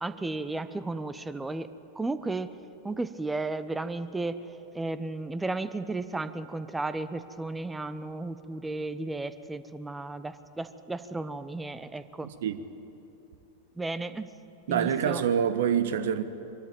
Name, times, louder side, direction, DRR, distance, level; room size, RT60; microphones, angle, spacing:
voice 1, 0.0-1.7 1.9-2.5 2.8-4.4 4.7-12.3 13.8-14.3 14.7-15.2, right 2 dB, 10° right, 0.9 m, -34 dB
voice 2, 12.2-12.6 14.7-16.2, right 8 dB, 55° right, 1.2 m, -26 dB
22.5 x 13.5 x 9.0 m
figure-of-eight pair, 90°, 0 cm